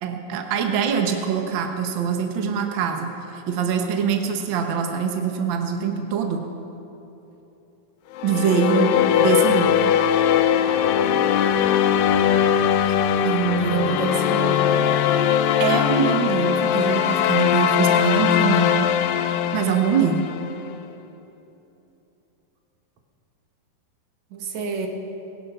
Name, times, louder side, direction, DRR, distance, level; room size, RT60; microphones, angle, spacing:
voice 1, 0.0-6.4 8.2-9.9 13.2-14.0 15.6-18.9 19.5-20.3, right 6 dB, 90° right, 4 dB, 1.0 m, -24 dB
sound 1, 8.2-20.6, left 9 dB, 80° left, 2.3 m, -20 dB
voice 2, 9.1-9.7 13.6-15.0 24.3-24.9, right 4 dB, 60° right, 3 dB, 2.4 m, -30 dB
23.0 x 11.0 x 5.6 m, 3.0 s
omnidirectional pair, 4.0 m